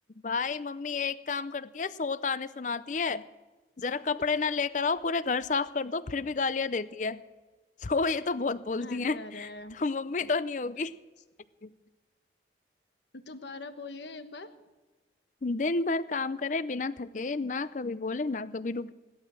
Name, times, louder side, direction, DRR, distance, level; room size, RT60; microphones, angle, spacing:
voice 1, 0.2-3.3 3.8-7.2 7.8-10.9 11.6-11.7 15.4-18.9, left 4 dB, 45° left, 16 dB, 0.5 m, -30 dB
voice 2, 8.8-9.8 13.1-14.5, left 2 dB, 75° left, 9 dB, 1.2 m, -42 dB
16.5 x 12.0 x 6.3 m, 1.2 s
head